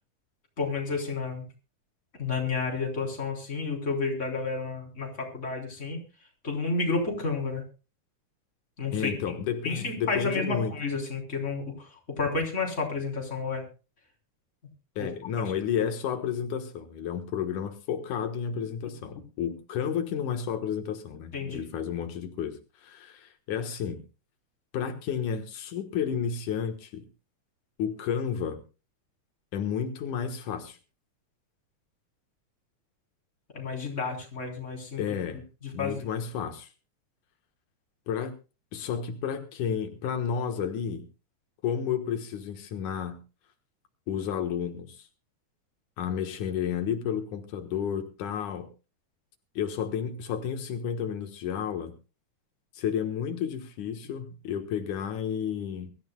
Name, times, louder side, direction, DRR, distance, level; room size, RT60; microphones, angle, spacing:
voice 1, 0.6-1.4 2.2-6.0 6.4-7.6 8.8-9.1 9.6-11.6 12.2-13.6 15.0-15.1 21.3-21.6 33.5-35.0 35.8-36.1, left 4 dB, 25° left, 0 dB, 3.9 m, -30 dB
voice 2, 8.9-10.7 15.0-24.0 24.7-27.1 27.8-28.6 29.5-30.8 35.0-35.4 35.7-36.7 38.1-38.3 38.7-41.1 41.6-43.2 44.1-45.1 46.0-48.7 49.6-52.0 52.7-55.9, left 8 dB, 85° left, 6 dB, 2.9 m, -31 dB
23.5 x 13.5 x 2.3 m, 0.32 s
omnidirectional pair, 3.5 m